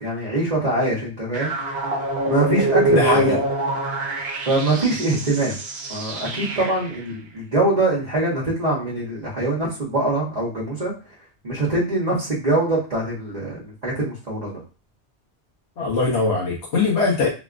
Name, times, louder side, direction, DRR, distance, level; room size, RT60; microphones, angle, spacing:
voice 1, 0.0-1.5 2.3-3.4 4.5-5.5 5.9-10.9 11.4-14.6, right 2 dB, 40° right, -7 dB, 0.9 m, -23 dB
sound 1, 1.3-7.0, right 2 dB, 65° right, 0.9 m, -25 dB
voice 2, 2.9-3.4 15.8-17.3, left 3 dB, 75° left, -4 dB, 1.1 m, -21 dB
3.6 x 2.4 x 2.4 m, 0.33 s
omnidirectional pair, 1.1 m